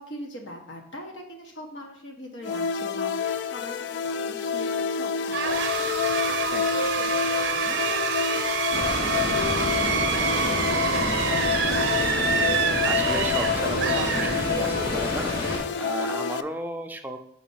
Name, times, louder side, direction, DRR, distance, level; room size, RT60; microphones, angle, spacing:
voice 1, 0.0-11.4 15.5-15.9, equal, 85° left, 1 dB, 1.3 m, -42 dB
sound 1, 2.4-16.4, left 7 dB, 70° left, 0.3 m, -28 dB
sound 2, 5.3-14.9, right 7 dB, 70° right, 0.7 m, -27 dB
sound 3, 8.7-15.6, left 1 dB, 55° left, 2.2 m, -29 dB
voice 2, 12.0-15.3 15.8-17.2, right 1 dB, 10° right, 5 dB, 0.4 m, -34 dB
5.0 x 4.2 x 5.6 m, 0.72 s
head